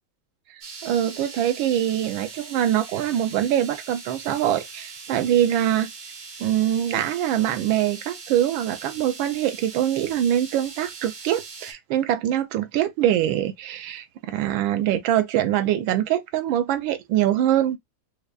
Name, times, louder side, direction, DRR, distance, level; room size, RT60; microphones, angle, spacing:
sound 1, 0.6-11.7, right 4 dB, 55° right, 0.8 m, -41 dB
voice 1, 0.8-5.9 6.4-17.8, right 11 dB, 85° right, 1.4 m, -23 dB
5.1 x 2.1 x 2.3 m
omnidirectional pair, 2.1 m